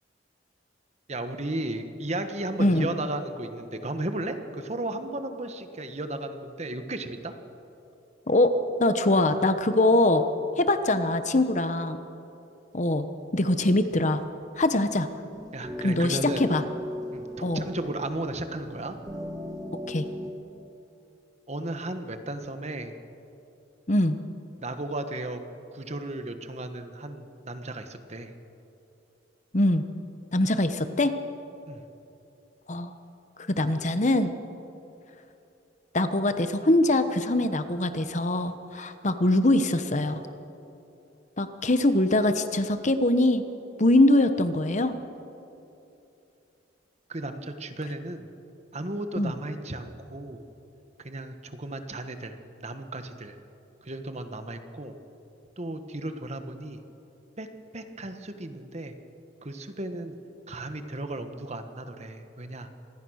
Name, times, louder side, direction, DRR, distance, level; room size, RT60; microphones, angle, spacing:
voice 1, 1.1-7.3 15.5-16.5 17.1-19.0 21.5-23.0 24.6-25.4 25.7-28.3 31.7-31.8 47.1-48.3 48.7-50.4 51.0-53.4 53.8-54.9 55.6-56.8 57.4-57.5 57.7-58.9 59.4-60.2 60.5-62.7, right 2 dB, 35° right, 8 dB, 1.4 m, -35 dB
voice 2, 8.8-10.2 10.6-12.0 12.7-13.1 13.3-14.2 14.6-15.1 15.8-16.6 17.4-17.6 19.9-20.0 23.9-24.2 29.5-29.8 30.3-31.1 32.7-32.9 33.4-34.3 35.9-40.2 41.4-43.4 43.8-44.9 49.2-49.3, left 1 dB, 40° left, 10 dB, 1.1 m, -23 dB
sound 1, 15.3-20.3, left 1 dB, 20° right, 2.6 m, -38 dB
26.0 x 20.0 x 6.5 m, 2.8 s
head